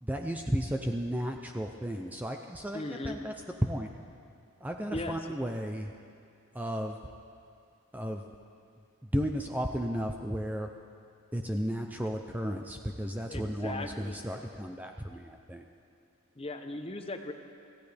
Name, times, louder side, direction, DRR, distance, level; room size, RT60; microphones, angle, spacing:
voice 1, 0.0-3.3 3.6-3.9 4.6-5.9 6.5-7.0 7.9-8.3 9.1-10.7 11.3-15.6, equal, 10° right, 3 dB, 0.6 m, -33 dB
voice 2, 2.7-3.2 4.9-5.1 13.3-14.2 16.4-17.3, left 2 dB, 25° left, 6 dB, 0.9 m, -38 dB
25.5 x 16.0 x 3.5 m, 2.4 s
head